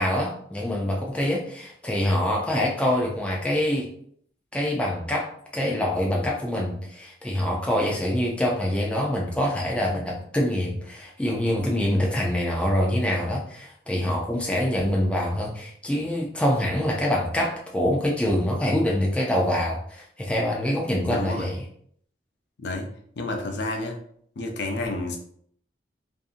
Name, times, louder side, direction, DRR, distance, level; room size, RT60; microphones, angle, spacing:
voice 1, 0.0-3.9 4.5-21.6, left 1 dB, 5° left, -2 dB, 0.3 m, -25 dB
voice 2, 21.0-21.5 22.6-22.9 23.2-24.0 24.4-25.2, left 2 dB, 70° left, 3 dB, 0.5 m, -30 dB
2.6 x 2.6 x 2.4 m, 0.64 s
head